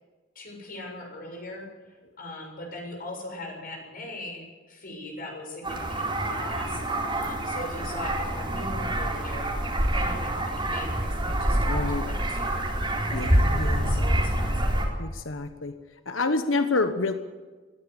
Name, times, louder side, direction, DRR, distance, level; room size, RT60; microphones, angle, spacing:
voice 1, 0.4-9.5 9.9-14.8, left 1 dB, 50° left, 1 dB, 7.0 m, -40 dB
sound 1, 5.6-14.8, right 1 dB, 25° right, 4.1 m, -26 dB
voice 2, 11.7-12.1 13.1-14.1 15.0-15.8 16.0-17.1, left 3 dB, 75° left, 8 dB, 1.2 m, -28 dB
20.0 x 15.5 x 8.3 m, 1.3 s
head